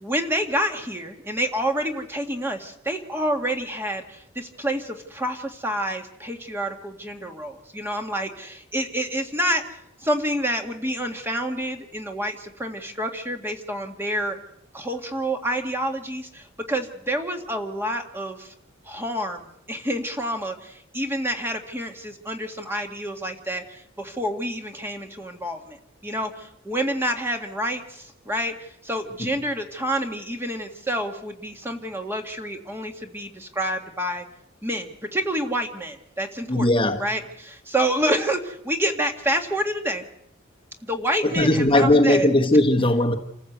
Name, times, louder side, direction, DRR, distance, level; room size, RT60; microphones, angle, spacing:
voice 1, 0.0-9.6 10.0-14.4 14.7-18.5 18.9-23.6 24.0-25.8 26.0-26.3 26.7-28.5 28.8-34.2 34.6-36.7 37.0-40.0 40.8-42.3, right 1 dB, 10° right, 1.9 m, -28 dB
voice 2, 36.5-37.0 41.2-43.2, left 1 dB, 25° left, 1.3 m, -18 dB
28.0 x 14.5 x 8.1 m
head